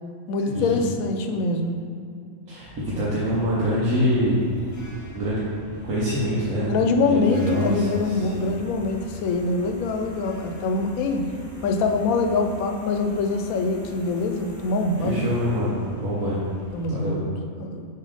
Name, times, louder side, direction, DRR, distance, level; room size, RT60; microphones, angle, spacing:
voice 1, 0.3-1.8 6.6-11.3 11.6-15.2 16.7-17.3 17.6-17.9, left 3 dB, 80° left, 4 dB, 1.0 m, -24 dB
voice 2, 2.5-4.4 5.1-5.4 5.8-6.7 7.1-8.6 15.0-16.4 16.9-17.2, equal, 85° right, -8 dB, 1.4 m, -25 dB
sound 1, 2.6-16.9, equal, 25° left, 0.4 m, -43 dB
6.7 x 3.1 x 5.0 m, 2.4 s
omnidirectional pair, 1.5 m